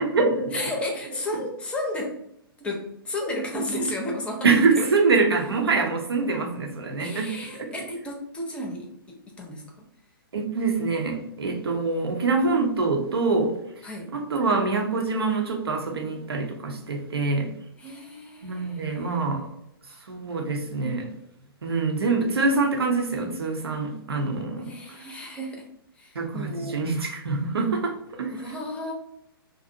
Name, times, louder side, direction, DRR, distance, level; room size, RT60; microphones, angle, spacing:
voice 1, 0.0-0.6 4.4-7.7 10.3-13.6 14.1-17.5 18.4-19.5 20.1-21.1 21.6-24.7 26.1-28.4, right 3 dB, 85° right, 2 dB, 0.6 m, -25 dB
voice 2, 0.5-2.2 2.6-4.9 7.0-9.6 13.8-14.1 17.8-19.2 19.9-20.1 24.6-25.6 26.0-26.8 28.3-28.9, left 1 dB, 10° left, 0 dB, 0.5 m, -33 dB
2.5 x 2.0 x 2.6 m, 0.77 s
hypercardioid pair, 125°, 13 cm